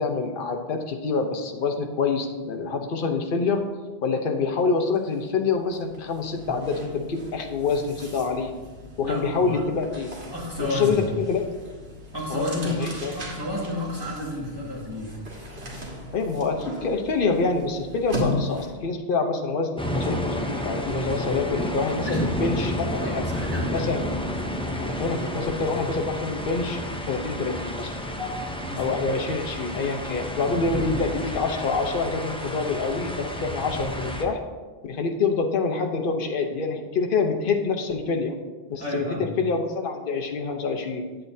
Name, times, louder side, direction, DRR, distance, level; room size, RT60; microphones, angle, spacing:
voice 1, 0.0-3.6 4.0-8.5 9.0-10.1 10.6-11.4 11.7-11.9 12.3-13.1 16.1-23.3 23.7-24.1 24.8-26.8 27.1-27.9 28.8-34.4 34.8-38.4 38.7-41.1, left 4 dB, 60° left, 3 dB, 0.9 m, -26 dB
sound 1, 5.0-5.1 5.5-18.9, left 1 dB, 80° right, 1.8 m, -37 dB
voice 2, 9.0-9.6 10.3-11.0 12.1-15.1 22.0-23.8 28.2-28.3 28.6-28.8 38.8-39.3, left 1 dB, 25° right, -6 dB, 2.0 m, -31 dB
sound 2, 19.8-34.2, left 1 dB, 5° left, 0.5 m, -30 dB
8.6 x 8.0 x 2.7 m, 1.3 s
omnidirectional pair, 1.1 m